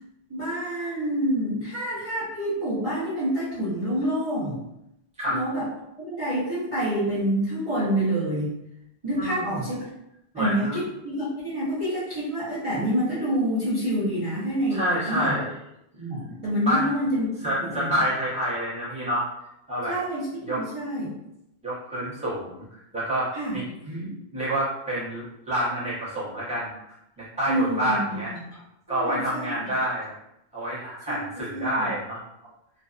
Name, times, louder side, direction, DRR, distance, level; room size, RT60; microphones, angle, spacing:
voice 1, 0.3-4.6 5.3-5.7 6.0-8.5 9.0-9.8 10.4-15.4 16.0-17.3 17.6-18.0 19.9-21.1 23.3-23.6 23.9-24.1 27.5-28.6 28.9-29.5 31.1-31.9, equal, 35° right, -11 dB, 0.7 m, -27 dB
voice 2, 10.3-10.8 14.7-15.5 16.7-16.9 17.4-19.2 19.7-20.0 20.4-20.6 21.6-23.6 24.3-26.7 27.2-28.3 28.9-30.1 30.5-32.2, equal, 5° right, -10 dB, 0.9 m, -28 dB
2.5 x 2.2 x 2.4 m, 0.83 s
omnidirectional pair, 1.1 m